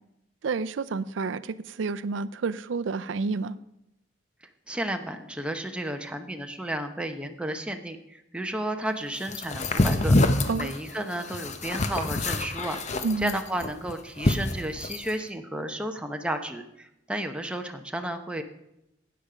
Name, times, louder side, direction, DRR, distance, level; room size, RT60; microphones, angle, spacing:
voice 1, 0.4-3.5 10.5-10.7 13.0-13.3, right 4 dB, 85° right, 14 dB, 0.5 m, -29 dB
voice 2, 4.7-10.2 10.5-18.4, right 1 dB, 5° right, 5 dB, 0.9 m, -32 dB
sound 1, 9.3-15.1, left 2 dB, 40° left, 0.8 m, -26 dB
12.5 x 8.6 x 5.0 m, 0.85 s
head